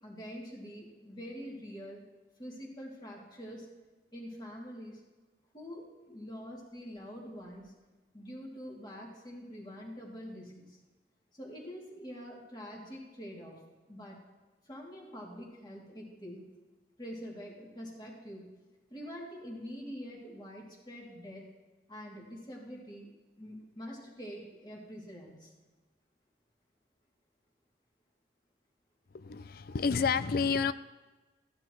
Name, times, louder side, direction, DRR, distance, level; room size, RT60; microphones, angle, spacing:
voice 1, 0.0-2.0 2.4-3.7 4.1-5.0 5.5-7.7 8.1-10.8 11.3-13.6 13.9-14.2 14.6-16.5 17.0-18.5 18.9-21.4 21.9-23.1 23.4-25.5, equal, 25° left, -3 dB, 2.8 m, -45 dB
voice 2, 29.1-30.7, left 5 dB, 55° left, 15 dB, 0.5 m, -29 dB
15.0 x 11.5 x 3.1 m, 1.2 s
head